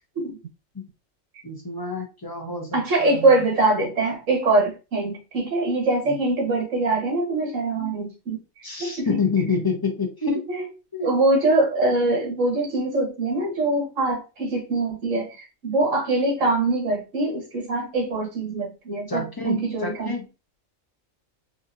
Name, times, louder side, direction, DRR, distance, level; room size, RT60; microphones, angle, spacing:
voice 1, 1.4-3.4 6.1-6.2 7.8-7.9 8.6-10.5 10.9-11.2 15.1-15.3 19.1-20.3, left 4 dB, 20° left, 0.8 m, -28 dB
voice 2, 2.7-8.4 8.8-9.2 10.5-10.6 11.0-20.1, right 2 dB, 65° right, 1.7 m, -23 dB
4.0 x 2.8 x 2.6 m
omnidirectional pair, 1.4 m